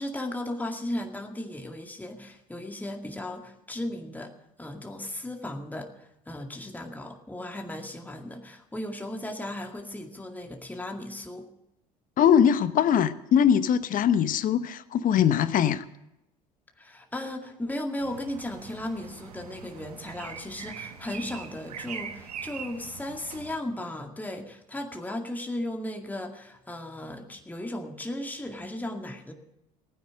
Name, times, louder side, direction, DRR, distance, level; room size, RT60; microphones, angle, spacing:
voice 1, 0.0-4.3 4.6-11.5 16.8-29.3, left 1 dB, 10° left, 3 dB, 2.1 m, -36 dB
voice 2, 12.2-15.8, left 8 dB, 45° left, 14 dB, 1.0 m, -22 dB
sound 1, 18.0-23.6, right 7 dB, 85° right, 1.3 m, -42 dB
16.5 x 9.3 x 7.6 m, 0.84 s
hypercardioid pair, 65°, 19 cm